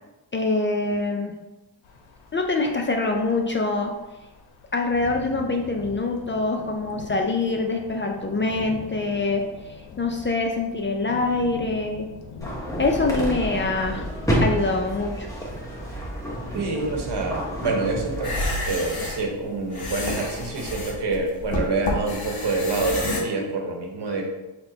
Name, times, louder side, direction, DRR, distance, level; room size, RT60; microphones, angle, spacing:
voice 1, 0.3-1.3 2.3-3.9 4.7-12.1 12.8-14.0 14.4-15.3, left 3 dB, 25° left, 2 dB, 0.4 m, -25 dB
sound 1, 1.8-15.0, left 4 dB, 80° left, 0.6 m, -43 dB
sound 2, 12.4-18.4, equal, 5° left, 1.0 m, -29 dB
voice 2, 16.5-18.4 18.6-24.3, right 3 dB, 60° right, 1 dB, 1.0 m, -27 dB
sound 3, 18.1-23.2, left 1 dB, 50° left, 1.1 m, -29 dB
4.2 x 2.2 x 3.8 m, 1.0 s
cardioid pair, 60°, 46 cm